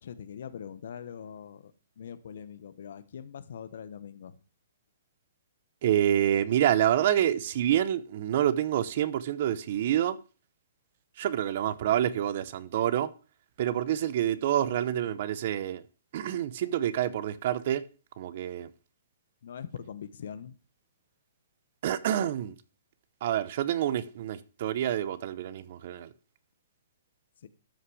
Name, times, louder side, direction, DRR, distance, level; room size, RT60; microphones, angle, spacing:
voice 1, 0.0-1.7 2.0-4.3 19.4-20.5 27.4-27.5, left 8 dB, 55° left, 1.0 m, -42 dB
voice 2, 5.8-10.2 11.2-13.1 13.6-15.8 16.1-17.8 18.2-18.7 21.8-22.5 23.2-26.1, right 11 dB, 40° right, 0.7 m, -27 dB
13.0 x 5.9 x 4.8 m
hypercardioid pair, 170°, 0 cm